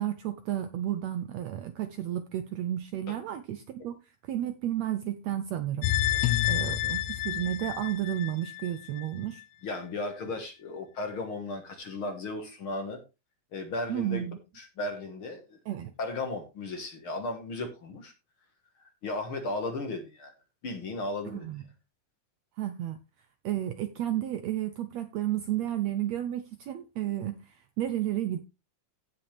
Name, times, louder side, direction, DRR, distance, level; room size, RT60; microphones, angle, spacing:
voice 1, 0.0-4.0 4.2-5.9 6.5-9.4 13.9-14.4 15.7-15.9 21.2-21.6 22.6-23.0 23.4-28.4, right 12 dB, 75° right, 1.6 m, -32 dB
sound 1, 5.8-9.1 9.4-9.5, left 13 dB, 85° left, 1.4 m, -29 dB
voice 2, 9.6-13.0 13.5-14.2 14.6-15.6 16.0-18.1 18.8-20.3 20.6-21.5, left 2 dB, 50° left, 1.9 m, -35 dB
16.0 x 5.7 x 3.3 m
omnidirectional pair, 3.8 m